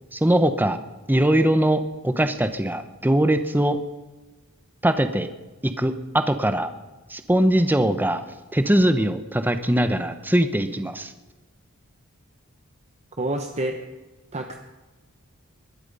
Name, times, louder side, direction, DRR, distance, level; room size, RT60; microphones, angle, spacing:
voice 1, 0.1-0.8 1.1-3.8 4.8-5.3 5.6-6.7 7.1-8.2 8.5-11.1, right 1 dB, 10° right, 9 dB, 0.9 m, -21 dB
voice 2, 13.2-13.8 14.3-14.6, right 1 dB, 30° right, 4 dB, 1.1 m, -27 dB
21.0 x 12.0 x 5.5 m, 1.2 s
head